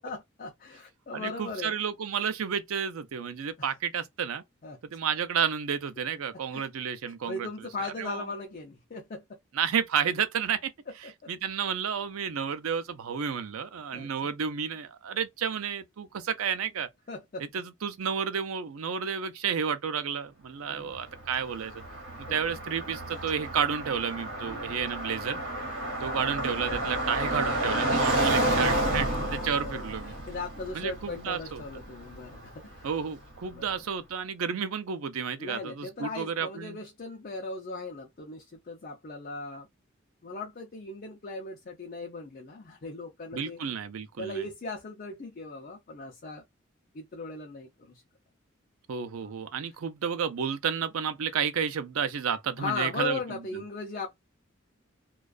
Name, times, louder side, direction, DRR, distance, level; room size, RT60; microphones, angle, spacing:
voice 1, 0.0-1.8 3.6-3.7 4.6-4.8 6.5-6.6 7.3-9.2 13.9-14.1 17.1-17.4 20.7-21.0 22.3-22.4 24.5-24.8 29.5-32.9 33.5-33.7 35.4-39.7 40.2-43.6 44.2-46.4 46.9-48.0 52.6-54.1, left 3 dB, 40° left, 0.5 m, -38 dB
voice 2, 1.1-4.4 4.9-8.3 9.5-10.7 11.0-16.9 17.4-21.7 22.3-25.4 26.0-30.1 30.7-31.6 32.8-36.8 43.3-44.5 48.9-53.2, right 7 dB, 80° right, 0.5 m, -31 dB
Car passing by, 20.9-33.0, right 1 dB, 65° right, 1.2 m, -31 dB
2.3 x 2.3 x 2.3 m
head